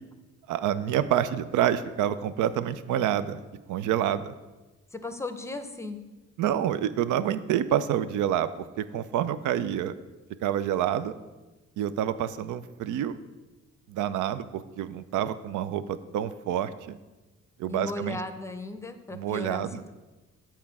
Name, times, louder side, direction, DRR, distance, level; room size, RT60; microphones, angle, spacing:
voice 1, 0.5-3.4 3.7-4.3 6.4-9.9 10.4-11.1 11.8-13.2 13.9-17.0 17.6-18.2 19.1-19.8, right 10 dB, 80° right, 14 dB, 0.5 m, -28 dB
voice 2, 4.9-6.0 17.7-19.9, left 2 dB, 10° left, 8 dB, 0.6 m, -36 dB
7.3 x 4.4 x 5.9 m, 1.2 s
cardioid pair, 90°, 30 cm